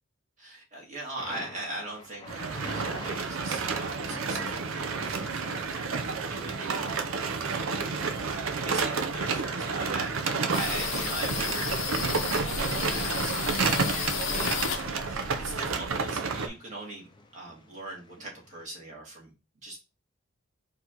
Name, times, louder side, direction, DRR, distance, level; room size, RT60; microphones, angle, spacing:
voice 1, 0.4-7.0 7.3-11.8 12.3-17.1 17.3-19.3 19.6-19.8, right 2 dB, 35° right, -3 dB, 2.2 m, -41 dB
Thunder, 1.2-18.6, left 2 dB, 25° left, 0.6 m, -50 dB
sound 1, 2.3-16.5, right 4 dB, 85° right, 0.7 m, -30 dB
sound 2, 10.5-16.0, left 6 dB, 65° left, 0.7 m, -33 dB
4.6 x 3.0 x 3.9 m, 0.28 s
head